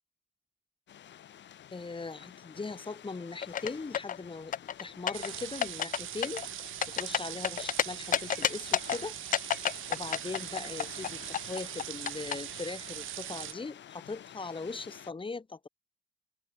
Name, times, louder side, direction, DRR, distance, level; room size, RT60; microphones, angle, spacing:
sound 1, 0.9-15.1, left 10 dB, 65° left, 2.6 m, -50 dB
voice 1, 1.7-6.4 6.9-9.1 9.9-15.7, left 3 dB, 25° left, 4.7 m, -40 dB
sound 2, 3.4-4.2 4.5-5.3 5.6-6.0 6.2-7.8 8.1-9.0 9.3-12.3, left 9 dB, 45° left, 0.5 m, -29 dB
sound 3, 5.1-13.5, right 15 dB, 85° right, 2.4 m, -41 dB
open air
cardioid pair, 90°, 20 cm